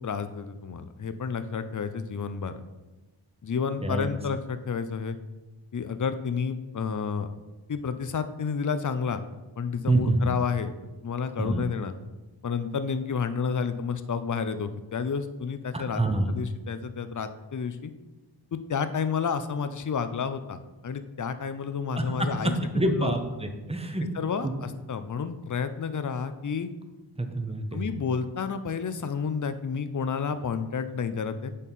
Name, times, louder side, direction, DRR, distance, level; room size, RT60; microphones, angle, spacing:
voice 1, 0.0-2.6 3.4-5.2 5.7-7.3 7.7-9.2 9.6-10.7 11.0-11.9 12.4-16.0 16.3-17.9 18.5-23.1 24.1-26.7 27.7-31.5, left 6 dB, 40° left, 10 dB, 0.5 m, -30 dB
voice 2, 9.8-10.3 11.4-11.6 15.7-16.3 22.0-22.3 22.7-24.0 24.4-24.5 27.2-27.8, right 1 dB, 15° right, 6 dB, 0.8 m, -26 dB
8.3 x 4.2 x 3.6 m, 1.1 s
cardioid pair, 40°, 47 cm